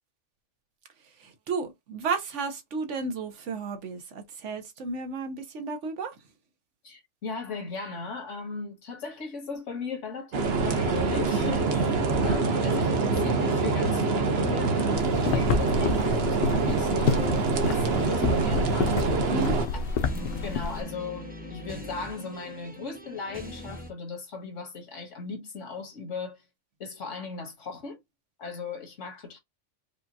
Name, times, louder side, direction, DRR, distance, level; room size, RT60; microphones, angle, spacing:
voice 1, 1.0-6.2 19.3-19.6, right 4 dB, 80° right, 1.2 m, -33 dB
voice 2, 6.8-18.9 19.9-26.4 26.8-28.0 28.4-29.4, left 4 dB, 80° left, 1.6 m, -38 dB
sound 1, 10.3-19.7, right 4 dB, 60° right, 1.0 m, -25 dB
sound 2, 14.9-20.8, left 5 dB, 65° left, 0.7 m, -29 dB
sound 3, 17.1-23.9, left 1 dB, 10° right, 0.7 m, -43 dB
4.8 x 2.3 x 2.7 m
omnidirectional pair, 1.2 m